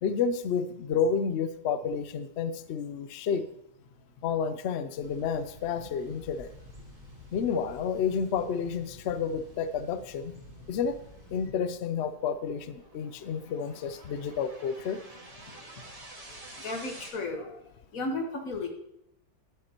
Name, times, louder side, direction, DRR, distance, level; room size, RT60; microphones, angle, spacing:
voice 1, 0.0-3.4 4.2-6.5 7.3-10.4 10.7-11.0 11.3-15.0, left 6 dB, 80° left, 11 dB, 0.6 m, -30 dB
Thunder / Bicycle, 5.0-11.5, equal, 45° right, 4.1 m, -51 dB
sound 1, 10.2-17.1, right 1 dB, 20° right, 1.6 m, -50 dB
voice 2, 16.6-17.5 17.9-18.7, left 2 dB, 55° left, 4 dB, 1.6 m, -33 dB
12.5 x 10.5 x 2.9 m, 0.81 s
omnidirectional pair, 1.8 m